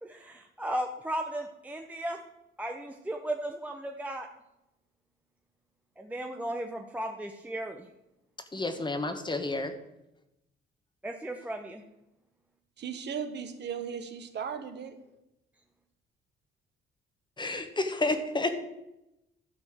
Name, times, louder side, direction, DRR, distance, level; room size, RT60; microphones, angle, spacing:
voice 1, 0.0-2.2 2.6-4.3 6.0-7.9 11.0-11.8, right 1 dB, 5° right, 3 dB, 0.7 m, -35 dB
voice 2, 8.5-9.7 17.4-18.6, left 2 dB, 20° left, 8 dB, 1.3 m, -30 dB
voice 3, 12.8-15.0, right 7 dB, 60° right, 8 dB, 1.1 m, -36 dB
12.0 x 4.3 x 7.6 m, 0.91 s
cardioid pair, 90°, 20 cm